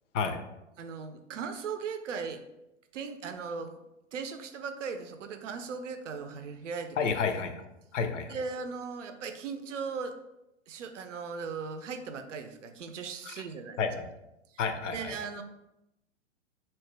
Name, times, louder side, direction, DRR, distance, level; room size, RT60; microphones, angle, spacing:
voice 1, 0.8-2.4 2.9-3.8 4.1-7.1 8.3-10.2 10.7-13.8 14.9-15.4, right 5 dB, 80° right, 8 dB, 0.5 m, -38 dB
voice 2, 7.0-7.5 7.9-8.4 13.3-13.4 13.8-14.1 14.6-15.1, left 5 dB, 75° left, 7 dB, 0.6 m, -30 dB
2.9 x 2.1 x 3.2 m, 0.89 s
hypercardioid pair, 110°, 37 cm